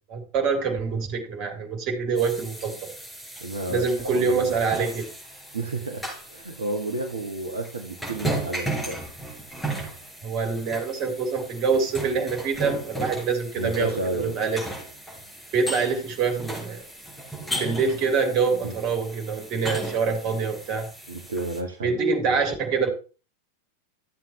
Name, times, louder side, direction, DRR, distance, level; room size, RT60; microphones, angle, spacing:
voice 1, 0.1-2.9 3.7-5.1 10.2-14.6 15.5-16.8 17.5-20.9 21.8-22.9, right 5 dB, 40° right, 3 dB, 3.4 m, -25 dB
sound 1, 2.1-21.6, right 1 dB, 5° left, 4.9 m, -36 dB
voice 2, 3.4-4.6 5.5-6.0 6.3-9.0 13.6-14.4 18.6-18.7 21.1-22.0 22.3-22.4, right 2 dB, 70° right, 3 dB, 1.3 m, -31 dB
13.5 x 7.6 x 3.1 m, 0.35 s
figure-of-eight pair, 90°, 0 cm